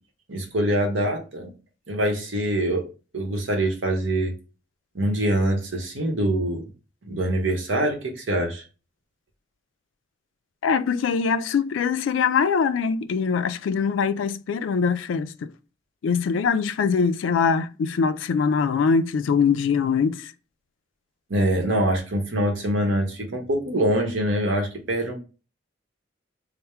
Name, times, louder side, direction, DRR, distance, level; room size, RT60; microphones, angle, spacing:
voice 1, 0.3-1.5 1.9-2.9 3.1-4.3 4.9-6.6 7.1-8.6 21.3-25.1, right 1 dB, 75° right, 1.0 m, -24 dB
voice 2, 10.6-15.5 16.0-20.3, left 6 dB, 75° left, 0.3 m, -23 dB
3.4 x 2.1 x 4.3 m
head